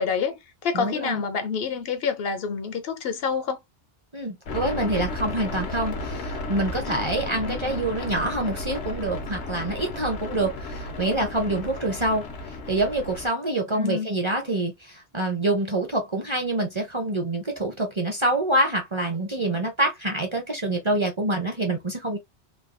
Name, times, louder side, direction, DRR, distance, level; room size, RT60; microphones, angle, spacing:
voice 1, 0.0-3.6 7.5-7.6 13.8-14.1, left 6 dB, 65° left, 0.7 m, -27 dB
voice 2, 0.7-1.2 4.1-12.2 12.7-22.2, right 1 dB, 35° right, 0.6 m, -26 dB
sound 1, 4.5-13.3, left 2 dB, 85° left, 1.0 m, -33 dB
3.3 x 2.3 x 2.4 m
omnidirectional pair, 1.1 m